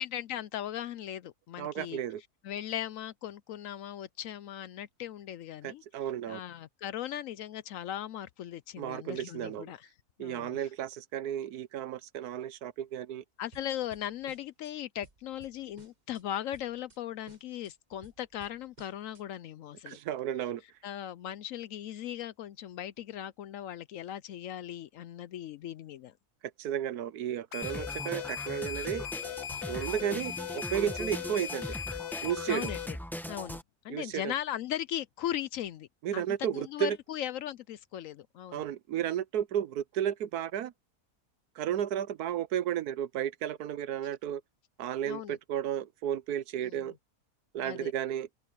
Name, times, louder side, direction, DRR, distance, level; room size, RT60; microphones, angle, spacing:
voice 1, 0.0-2.0 2.4-5.8 6.3-9.9 10.2-10.7 13.4-20.0 20.8-26.1 30.0-30.3 32.5-33.0 33.3-33.6 33.8-35.9 36.1-38.6 45.1-45.4 46.6-46.9 47.6-47.9, left 11 dB, 70° left, 0.9 m, -38 dB
voice 2, 1.6-2.2 5.6-6.4 8.8-9.7 10.2-13.2 19.9-20.6 26.6-29.1 29.7-31.7 32.2-32.7 33.9-34.3 36.0-37.0 38.5-40.7 41.6-44.4 44.8-47.0 47.5-48.3, right 10 dB, 80° right, 1.3 m, -33 dB
sound 1, 13.5-14.7 15.0-16.2 16.5-17.0 17.3-19.2, right 4 dB, 30° right, 1.4 m, -57 dB
sound 2, 27.5-32.9, left 10 dB, 85° left, 1.4 m, -38 dB
sound 3, 27.6-33.6, equal, ahead, 1.0 m, -40 dB
open air
omnidirectional pair, 1.6 m